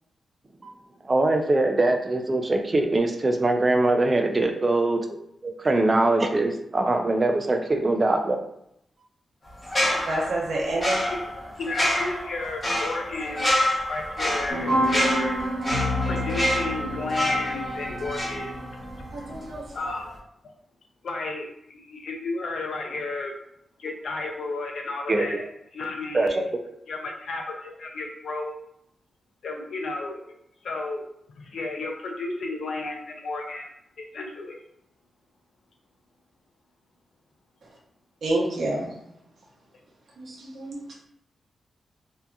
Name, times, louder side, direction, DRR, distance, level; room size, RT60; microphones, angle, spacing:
voice 1, 1.0-5.0 5.4-8.4 25.1-25.3 26.1-26.6, right 2 dB, 25° right, 4 dB, 0.3 m, -22 dB
sound 1, 9.6-19.0 19.3-19.5, left 1 dB, 25° left, 0.8 m, -27 dB
voice 2, 10.1-11.0 19.1-19.9 38.2-39.0 40.2-40.9, right 1 dB, 70° right, -3 dB, 0.8 m, -28 dB
voice 3, 10.9-13.5 13.9-15.5 16.0-18.6 19.7-20.5 21.0-23.4 23.8-26.4 26.9-28.6 29.4-34.6, left 3 dB, 65° left, 2 dB, 0.5 m, -33 dB
sound 2, 14.5-19.5, equal, 55° right, 1.0 m, -29 dB
2.7 x 2.4 x 2.3 m, 0.75 s
wide cardioid pair, 140°, 0 cm